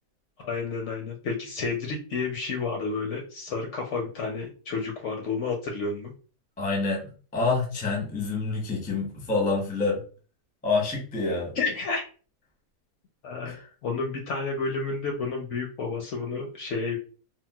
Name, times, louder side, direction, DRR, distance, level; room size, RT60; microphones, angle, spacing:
voice 1, 0.4-6.1 11.5-12.0 13.2-13.5 13.8-17.0, left 4 dB, 65° left, 2 dB, 0.7 m, -30 dB
voice 2, 6.6-7.1 7.3-10.0 10.6-11.5 13.4-13.6, left 3 dB, 10° left, -1 dB, 0.4 m, -27 dB
3.8 x 2.0 x 2.2 m, 0.38 s
omnidirectional pair, 1.6 m